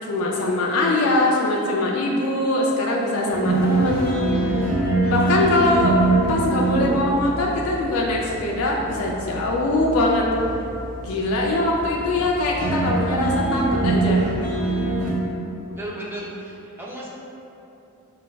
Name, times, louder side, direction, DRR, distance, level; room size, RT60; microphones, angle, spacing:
voice 1, 0.1-4.8 5.1-6.0 6.3-10.3 11.0-14.3, left 2 dB, 75° left, -2 dB, 0.4 m, -22 dB
sound 1, 3.3-15.1, right 2 dB, 45° right, 1.0 m, -24 dB
voice 2, 15.6-17.1, right 1 dB, 10° right, -5 dB, 0.4 m, -35 dB
5.4 x 2.3 x 2.2 m, 2.9 s
head